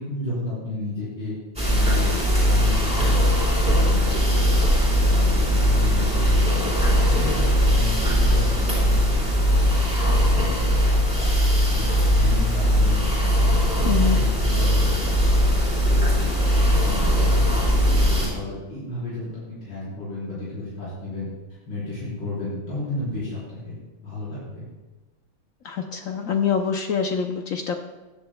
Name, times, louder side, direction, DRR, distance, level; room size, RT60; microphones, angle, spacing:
voice 1, 0.0-1.3 1.7-4.4 4.9-6.6 7.0-16.4 16.8-21.3 21.7-24.6, left 2 dB, 85° left, -10 dB, 5.0 m, -33 dB
sound 1, 1.6-18.3, equal, 5° right, 3.5 m, -20 dB
voice 2, 13.9-14.2 25.6-27.7, left 7 dB, 70° left, 5 dB, 0.7 m, -25 dB
16.0 x 9.8 x 2.2 m, 1.2 s
omnidirectional pair, 2.1 m